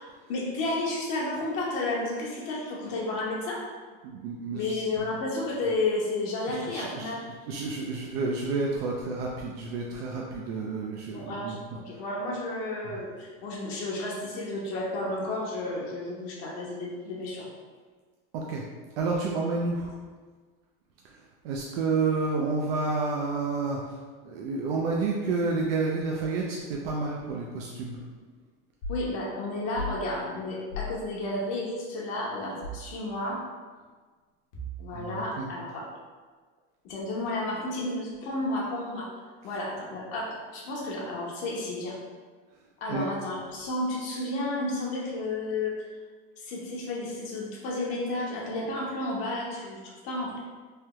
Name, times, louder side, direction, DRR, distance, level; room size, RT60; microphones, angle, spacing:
voice 1, 0.3-3.6 4.5-7.3 11.1-17.5 28.9-33.4 34.8-35.8 36.8-39.1 39.4-42.0 42.8-45.7 46.4-50.4, left 2 dB, 60° left, -4 dB, 0.7 m, -32 dB
voice 2, 4.0-4.8 6.5-7.2 7.5-11.6 12.8-13.0 18.3-18.6 19.0-19.9 21.0-21.1 21.4-24.0 24.2-28.0 34.9-35.5 42.9-43.1, right 3 dB, 90° right, -2 dB, 0.5 m, -30 dB
sound 1, 28.8-29.1 29.7-30.0 30.7-31.0 32.6-32.9 34.5-35.0, left 2 dB, 80° left, 1.0 m, -36 dB
3.3 x 2.2 x 2.9 m, 1.4 s
supercardioid pair, 135°, 29 cm